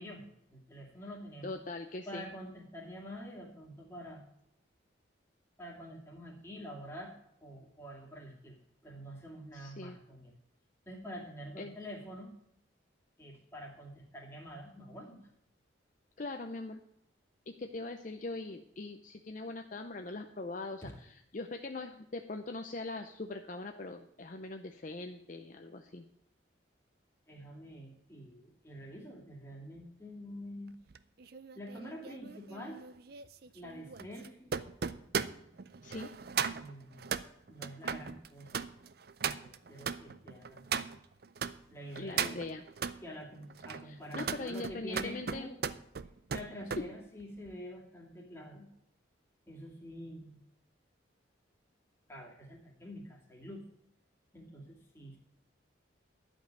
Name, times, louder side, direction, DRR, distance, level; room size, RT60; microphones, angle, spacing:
voice 1, 0.0-1.5 2.1-4.2 5.6-7.1 7.4-8.6 8.8-10.3 10.9-12.3 13.2-15.2 20.8-20.9 27.3-30.7 31.6-32.8 33.5-34.5 36.5-37.1 37.5-38.6 39.2-40.9 41.7-42.4 43.0-45.6 46.3-48.7 49.5-50.4 52.1-53.6 54.3-55.2, equal, 15° left, -2 dB, 2.4 m, -47 dB
voice 2, 1.4-2.3 9.5-10.0 11.6-11.8 16.2-16.8 17.5-26.0 35.8-36.1 42.0-42.6 43.8-45.5 46.8-46.9, left 2 dB, 40° left, 5 dB, 0.6 m, -41 dB
sound 1, 30.9-41.5 41.9-43.0 43.5-46.9 47.2-47.5, right 6 dB, 50° right, 0.5 m, -38 dB
12.0 x 5.4 x 8.7 m, 0.79 s
head